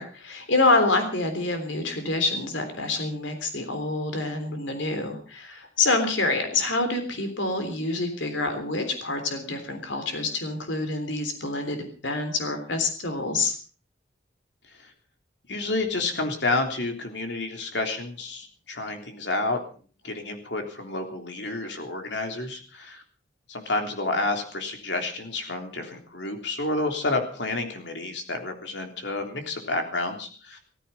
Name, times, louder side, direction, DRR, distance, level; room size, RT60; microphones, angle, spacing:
voice 1, 0.0-11.8 12.0-13.5, left 2 dB, 85° left, 7 dB, 3.5 m, -26 dB
voice 2, 15.5-19.6 20.0-23.0 23.5-30.6, left 2 dB, 70° left, 4 dB, 3.4 m, -30 dB
15.5 x 15.0 x 5.6 m, 0.41 s
head